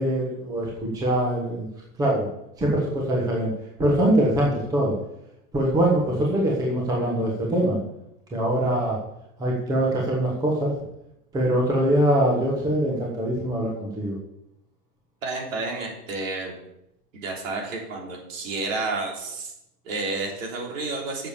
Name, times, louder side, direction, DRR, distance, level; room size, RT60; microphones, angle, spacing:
voice 1, 0.0-1.7 2.0-2.3 2.6-3.5 3.8-5.0 5.5-7.8 8.3-9.0 9.4-10.7 11.3-14.2, right 1 dB, 10° right, -2 dB, 1.2 m, -23 dB
voice 2, 15.2-16.5 17.1-19.5 19.8-21.3, right 3 dB, 55° right, 0 dB, 3.7 m, -30 dB
8.1 x 7.0 x 6.9 m, 0.82 s
hypercardioid pair, 160°, 46 cm